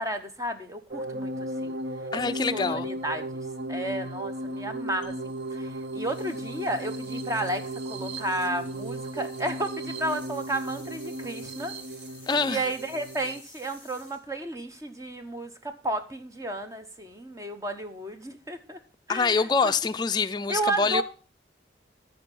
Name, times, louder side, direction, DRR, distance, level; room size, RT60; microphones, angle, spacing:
voice 1, 0.0-1.3 1.6-1.8 2.1-3.4 3.7-11.7 12.5-18.8 19.1-19.7 20.5-21.0, right 1 dB, 20° right, 0.8 m, -32 dB
sound 1, 0.9-13.4, right 1 dB, 75° right, 0.6 m, -35 dB
voice 2, 2.1-2.9 12.3-12.6 19.1-21.0, left 4 dB, 25° left, 0.4 m, -25 dB
sound 2, 5.0-15.2, left 3 dB, 10° left, 3.3 m, -54 dB
13.0 x 4.6 x 5.3 m
head